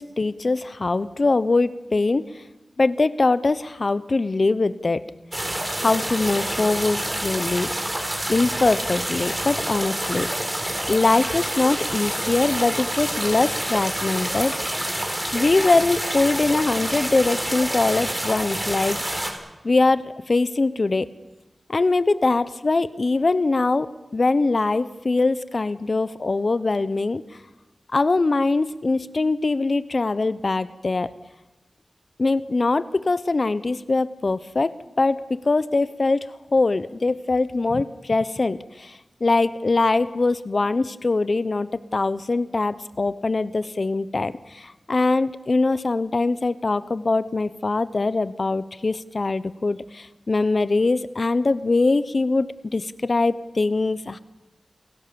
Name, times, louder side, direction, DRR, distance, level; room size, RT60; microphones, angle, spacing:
voice 1, 0.0-2.2 2.8-5.0 5.8-7.7 8.3-10.3 10.9-14.5 15.3-19.3 19.6-21.1 21.7-27.2 27.9-31.1 32.2-54.2, left 3 dB, 50° left, 15 dB, 1.0 m, -22 dB
sound 1, 5.3-19.3, right 1 dB, 20° right, 4.4 m, -27 dB
28.5 x 17.0 x 7.1 m, 1.0 s
wide cardioid pair, 70°, 0 cm